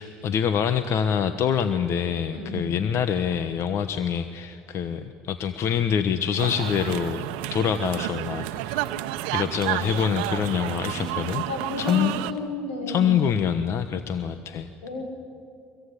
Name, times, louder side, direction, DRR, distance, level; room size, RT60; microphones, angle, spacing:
voice 1, 0.0-9.0 9.3-11.4 11.8-12.2 12.9-14.7, left 8 dB, 55° left, 11 dB, 1.2 m, -25 dB
voice 2, 2.3-2.7 10.9-11.1 11.5-13.1 14.8-15.0, left 2 dB, 85° left, 4 dB, 5.0 m, -32 dB
sound 1, 6.4-12.3, right 15 dB, 75° right, 0.9 m, -31 dB
24.5 x 22.5 x 10.0 m, 2.4 s
hypercardioid pair, 70°, 6 cm